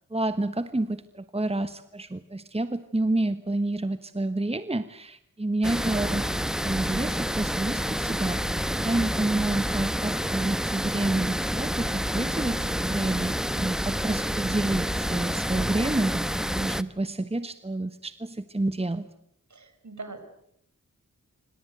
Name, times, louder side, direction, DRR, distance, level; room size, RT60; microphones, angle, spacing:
voice 1, 0.1-6.3 6.6-8.4 8.8-16.2 16.5-19.1, right 2 dB, 20° right, 11 dB, 1.2 m, -29 dB
sound 1, 5.6-16.8, equal, ahead, 1.0 m, -28 dB
voice 2, 19.5-20.2, right 3 dB, 60° right, 9 dB, 5.5 m, -41 dB
27.0 x 26.0 x 8.0 m, 0.73 s
wide cardioid pair, 90°, 32 cm